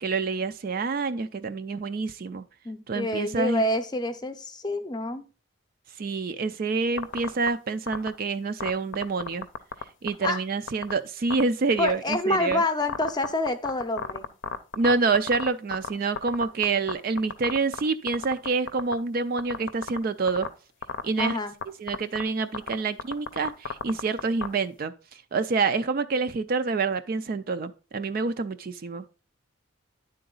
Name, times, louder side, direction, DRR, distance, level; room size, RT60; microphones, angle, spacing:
voice 1, 0.0-2.4 2.9-3.6 6.0-9.5 10.0-12.6 14.8-20.5 21.0-21.4 21.8-29.2, right 4 dB, 45° right, 0.4 m, -27 dB
voice 2, 2.6-5.2 10.2-10.4 11.8-14.3 21.2-21.5, left 2 dB, 20° left, 0.6 m, -27 dB
sound 1, 7.0-7.5 7.9-8.1 8.6-9.8 10.1-10.3 10.7-10.9 11.3-11.4 11.8-12.5 12.9-15.9 16.2-16.9 17.2-17.8 18.1-18.9 19.4-20.0 20.3-20.5 20.8-21.3 21.6-21.7 21.9-22.2 22.5-22.7 23.0-24.5, left 5 dB, 65° left, 0.6 m, -30 dB
10.0 x 3.9 x 3.8 m
head